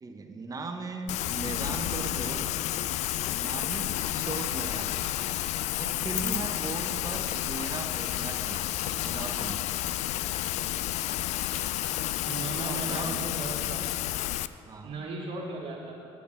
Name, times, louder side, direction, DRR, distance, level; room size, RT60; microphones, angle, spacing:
voice 1, 0.0-2.6 3.3-5.0 5.8-9.6 12.5-13.2 14.7-15.1, right 3 dB, 30° right, 5 dB, 1.0 m, -38 dB
Rain, 1.1-14.5, left 14 dB, 65° left, 0.4 m, -31 dB
voice 2, 12.2-13.9 14.8-15.9, right 2 dB, 60° right, -4 dB, 1.8 m, -37 dB
8.7 x 8.3 x 6.9 m, 2.6 s
cardioid pair, 95°, 12 cm